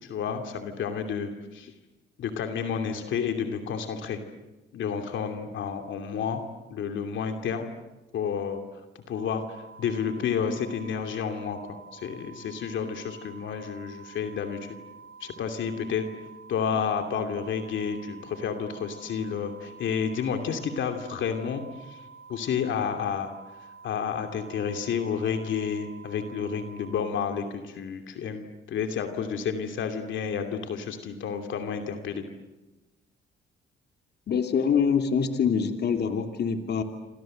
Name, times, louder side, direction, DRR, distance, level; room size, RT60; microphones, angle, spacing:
voice 1, 0.0-1.7 2.2-4.2 4.7-6.4 6.7-7.7 8.1-8.8 9.1-14.8 15.2-16.0 16.5-22.0 22.3-23.3 23.8-32.2, left 7 dB, 75° left, 6 dB, 2.8 m, -30 dB
sound 1, 9.1-26.9, right 5 dB, 25° right, 6.1 m, -49 dB
voice 2, 34.3-36.8, left 6 dB, 55° left, 6 dB, 2.9 m, -25 dB
28.5 x 26.0 x 7.8 m, 1.1 s
cardioid pair, 90°, 20 cm